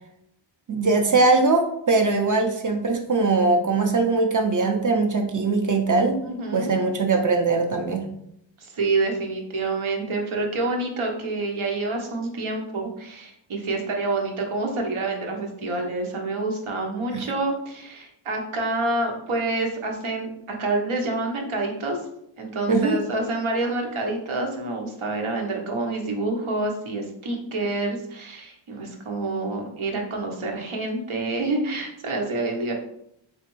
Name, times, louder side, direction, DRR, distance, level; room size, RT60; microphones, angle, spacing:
voice 1, 0.7-6.2 6.5-8.1 17.1-17.2 22.7-23.0, right 3 dB, 45° right, 3 dB, 0.5 m, -21 dB
voice 2, 6.2-6.7 8.6-20.3 20.6-22.0 22.4-32.7, right 2 dB, 90° right, 1 dB, 0.9 m, -27 dB
3.8 x 3.2 x 3.0 m, 0.76 s
wide cardioid pair, 125°, 47 cm